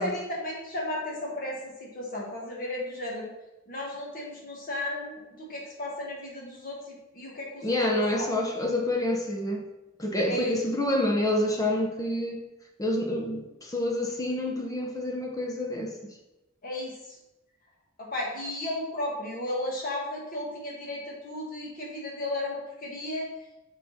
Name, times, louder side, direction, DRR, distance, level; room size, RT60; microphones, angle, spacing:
voice 1, 0.0-3.3 3.7-8.3 10.3-10.6 16.6-17.2 18.0-23.3, left 1 dB, 40° left, -3 dB, 1.6 m, -34 dB
voice 2, 7.6-9.7 10.0-12.4 12.8-15.9, left 1 dB, 15° left, 1 dB, 0.7 m, -28 dB
6.4 x 3.9 x 4.1 m, 0.98 s
head